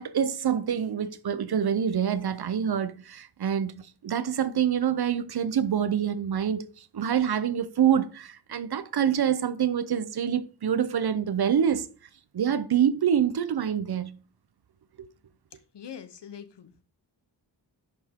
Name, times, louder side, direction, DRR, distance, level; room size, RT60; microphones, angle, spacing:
voice 1, 0.0-11.9 12.3-14.2 15.0-15.1, right 8 dB, 60° right, 0.7 m, -26 dB
voice 2, 15.7-16.8, left 8 dB, 70° left, 1.1 m, -43 dB
10.5 x 5.6 x 3.6 m
wide cardioid pair, 145°, 42 cm